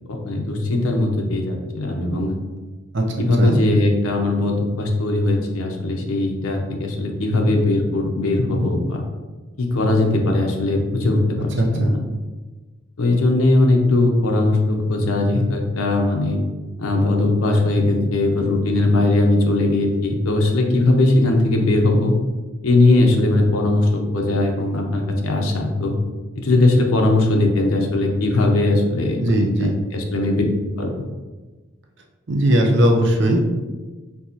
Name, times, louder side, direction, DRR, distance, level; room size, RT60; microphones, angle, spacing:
voice 1, 0.1-2.3 3.2-9.0 9.6-11.9 13.0-16.4 16.8-22.1 22.6-25.9 26.4-29.2 29.6-30.4 30.8-30.9, left 2 dB, 80° left, 2 dB, 0.7 m, -19 dB
voice 2, 2.9-3.6 11.5-12.0 29.2-29.8 32.3-33.4, right 1 dB, 55° right, 2 dB, 0.6 m, -18 dB
4.6 x 3.5 x 2.8 m, 1.3 s
head